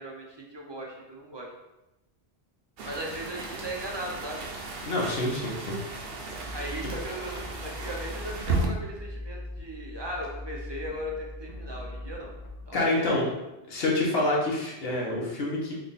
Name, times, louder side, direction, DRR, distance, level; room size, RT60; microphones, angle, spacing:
voice 1, 0.0-1.5 2.8-4.4 6.5-12.3 12.7-13.1, right 1 dB, 40° right, -2 dB, 0.4 m, -37 dB
sound 1, 2.8-8.7, right 3 dB, 65° right, 0.8 m, -35 dB
voice 2, 4.8-5.7 12.7-13.3 13.7-15.7, left 2 dB, 65° left, -3 dB, 1.1 m, -27 dB
sound 2, 6.1-12.6, left 1 dB, 50° left, 0.6 m, -41 dB
3.6 x 2.3 x 3.9 m, 0.96 s
omnidirectional pair, 1.1 m